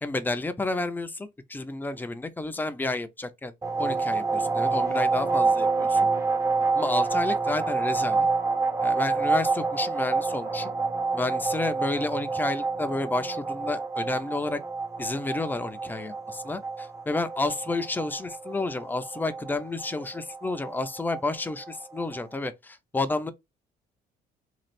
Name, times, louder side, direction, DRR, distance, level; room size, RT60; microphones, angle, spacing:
voice 1, 0.0-6.1 6.7-8.3 8.8-10.7 11.1-14.6 15.0-23.3, left 2 dB, 10° left, 0.5 m, -31 dB
sound 1, 3.6-22.2, right 4 dB, 20° right, 0.8 m, -28 dB
3.1 x 2.4 x 4.1 m
cardioid pair, 110°, 17 cm